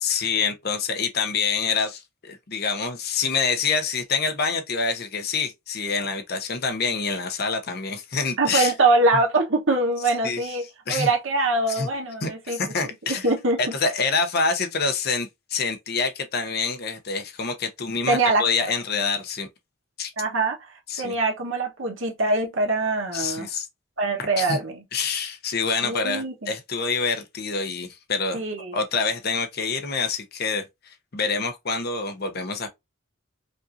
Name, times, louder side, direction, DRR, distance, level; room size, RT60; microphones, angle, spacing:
voice 1, 0.0-8.7 10.2-10.6 10.9-11.1 11.7-11.9 12.2-13.3 13.6-19.5 20.0-20.1 20.9-21.2 23.1-23.7 24.2-24.6 24.9-28.4 28.7-32.7, left 5 dB, 50° left, 0.8 m, -26 dB
voice 2, 8.4-10.6 10.9-12.6 13.1-13.6 18.1-18.4 20.2-20.6 21.0-23.5 24.0-24.8 25.8-26.5 28.3-28.8, right 2 dB, 70° right, 1.2 m, -23 dB
5.2 x 2.6 x 2.6 m
head